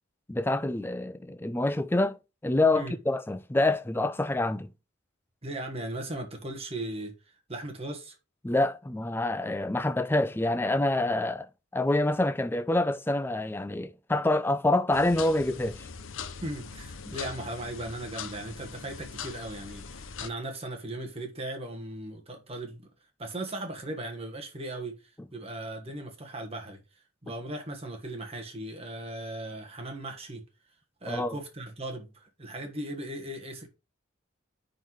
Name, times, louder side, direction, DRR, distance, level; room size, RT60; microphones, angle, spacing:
voice 1, 0.3-2.2 2.4-4.7 8.4-15.9 17.1-17.2 31.1-31.3, left 2 dB, 10° left, 0.4 m, -27 dB
voice 2, 5.4-8.2 16.4-22.9 23.2-26.8 27.2-30.4 31.0-33.7, right 1 dB, 30° right, 1.3 m, -38 dB
sound 1, 14.9-20.3, left 6 dB, 75° left, 0.7 m, -41 dB
10.0 x 4.0 x 3.1 m
head